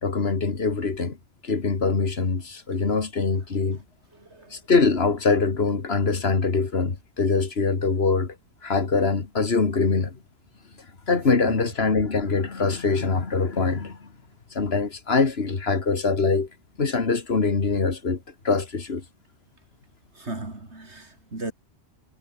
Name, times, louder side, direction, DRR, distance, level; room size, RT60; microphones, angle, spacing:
voice 1, 0.0-1.2 1.4-3.8 4.5-8.3 8.6-10.2 11.1-14.1 14.5-16.5 16.8-18.2 18.4-19.0, left 4 dB, 70° left, 2.2 m, -23 dB
voice 2, 4.1-4.6 11.4-11.5 20.2-21.5, right 2 dB, 90° right, 4.4 m, -36 dB
omnidirectional pair, 1.1 m